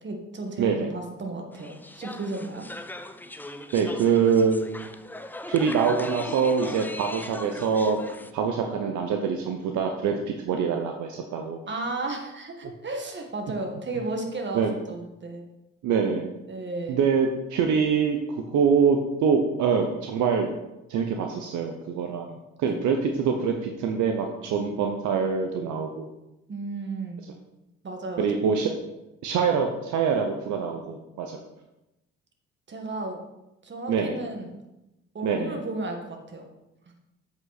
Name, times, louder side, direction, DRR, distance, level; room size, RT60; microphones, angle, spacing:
voice 1, 0.0-2.7 11.7-15.4 16.5-17.0 22.6-22.8 26.5-27.2 27.8-28.4 32.7-33.2 33.6-34.5 35.1-36.5, right 2 dB, 35° right, 3 dB, 1.8 m, -33 dB
voice 2, 0.6-0.9 3.7-4.9 5.5-8.0 8.3-11.6 14.5-14.7 15.8-16.3 16.9-20.5 20.9-22.3 22.6-26.1 28.2-28.7 29.2-31.4 33.9-34.2 35.2-35.6, right 6 dB, 70° right, 3 dB, 0.9 m, -24 dB
sound 1, 1.5-8.3, left 1 dB, 5° left, 0.5 m, -40 dB
7.5 x 5.3 x 4.1 m, 0.94 s
supercardioid pair, 65°, 31 cm